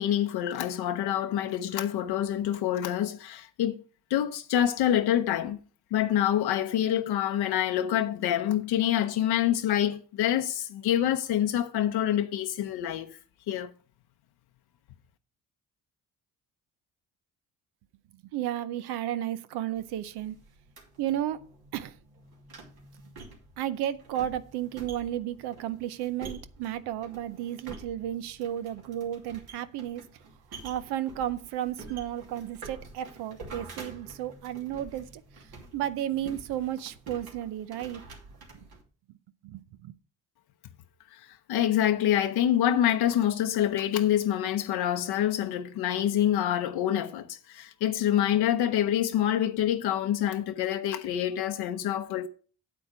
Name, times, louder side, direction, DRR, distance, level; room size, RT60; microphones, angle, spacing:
voice 1, 0.0-3.8 4.1-5.6 5.9-13.2 13.5-13.7 41.1-52.3, left 11 dB, 80° left, 0.7 m, -26 dB
voice 2, 18.3-20.4 21.0-21.5 21.7-21.9 23.6-30.0 30.6-35.5 35.7-38.0 39.4-39.9, right 11 dB, 90° right, 0.6 m, -33 dB
sound 1, 19.8-38.8, right 3 dB, 70° right, 2.7 m, -48 dB
8.3 x 7.8 x 4.8 m
supercardioid pair, 60°, 38 cm